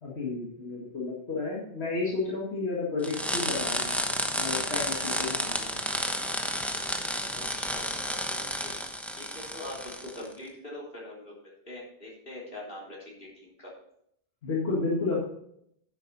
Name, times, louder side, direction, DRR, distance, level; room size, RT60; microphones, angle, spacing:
voice 1, 0.0-4.0 4.3-5.8 14.4-15.2, left 3 dB, 80° left, -5 dB, 2.3 m, -32 dB
sound 1, 3.0-10.3, equal, ahead, 0.9 m, -31 dB
voice 2, 7.3-8.8 9.2-13.7, left 1 dB, 60° left, -4 dB, 3.5 m, -43 dB
10.5 x 7.8 x 4.0 m, 0.72 s
omnidirectional pair, 1.1 m